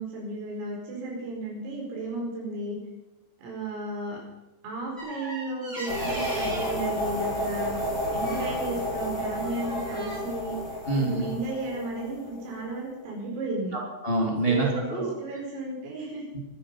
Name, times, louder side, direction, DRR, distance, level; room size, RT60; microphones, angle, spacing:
voice 1, 0.0-2.8 3.4-4.2 4.6-10.6 11.0-13.8 14.4-16.2, right 2 dB, 80° right, -2 dB, 7.6 m, -34 dB
sound 1, 5.0-6.9 8.2-8.6 9.3-10.2, equal, 15° right, 3.6 m, -38 dB
sound 2, 5.9-12.8, equal, 35° left, 4.8 m, -31 dB
voice 2, 10.9-11.2 13.7-15.1 16.3-16.4, right 2 dB, 75° left, -2 dB, 0.5 m, -26 dB
23.0 x 10.0 x 5.6 m, 0.99 s
omnidirectional pair, 5.9 m